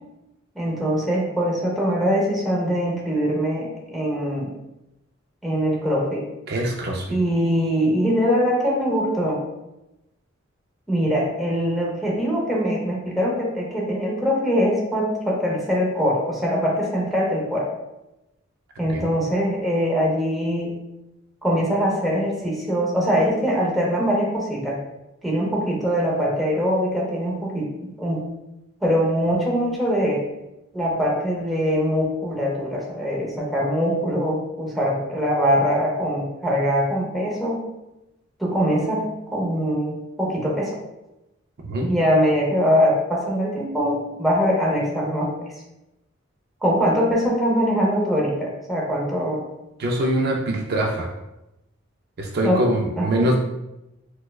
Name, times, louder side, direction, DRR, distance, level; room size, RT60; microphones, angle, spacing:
voice 1, 0.6-4.5 5.4-6.2 7.1-9.4 10.9-17.7 18.8-20.7 21.4-24.8 25.2-28.3 28.8-30.2 30.7-37.6 38.4-39.0 39.3-40.7 41.9-45.3 46.6-49.4 52.4-52.6 53.0-53.3, equal, ahead, -5 dB, 0.7 m, -22 dB
voice 2, 6.5-7.2 18.9-19.0 41.7-41.9 49.8-51.1 52.2-53.4, right 1 dB, 50° right, 1 dB, 0.4 m, -23 dB
4.3 x 2.2 x 2.3 m, 0.93 s
head